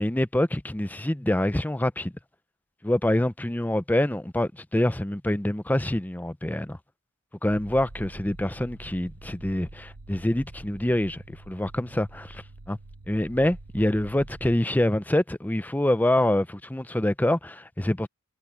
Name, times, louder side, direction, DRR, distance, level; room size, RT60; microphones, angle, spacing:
voice 1, 0.0-2.1 2.8-6.8 7.4-12.8 13.1-18.1, left 1 dB, 5° left, 0.5 m, -26 dB
sound 1, 7.5-14.6, right 2 dB, 75° right, 1.1 m, -46 dB
head